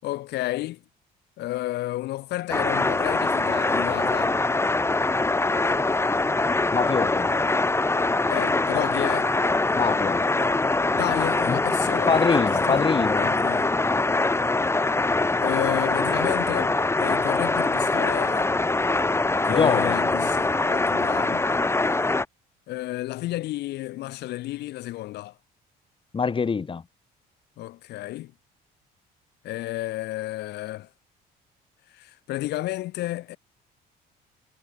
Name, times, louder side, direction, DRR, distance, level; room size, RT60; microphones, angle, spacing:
voice 1, 0.0-0.8 1.4-4.4 8.3-9.3 10.9-12.9 13.2-13.7 15.4-18.5 19.4-21.5 22.7-25.4 27.6-28.3 29.4-30.9 31.9-33.4, left 16 dB, 80° left, 6.0 m, -31 dB
sound 1, 2.5-22.3, left 2 dB, 15° left, 6.8 m, -23 dB
voice 2, 6.7-7.3 9.8-10.2 11.5-11.6 12.1-13.3 19.5-20.0 26.1-26.8, left 5 dB, 30° left, 7.0 m, -24 dB
cardioid pair, 110°, 17 cm